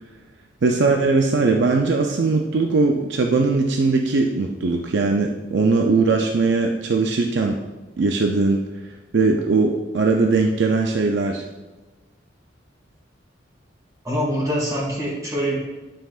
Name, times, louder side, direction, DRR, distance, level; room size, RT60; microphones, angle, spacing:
voice 1, 0.6-7.6 8.0-8.6 9.1-11.4, right 3 dB, 70° right, 2 dB, 0.5 m, -20 dB
voice 2, 14.0-15.6, equal, 20° right, -6 dB, 1.9 m, -24 dB
9.8 x 5.8 x 2.4 m, 1.2 s
head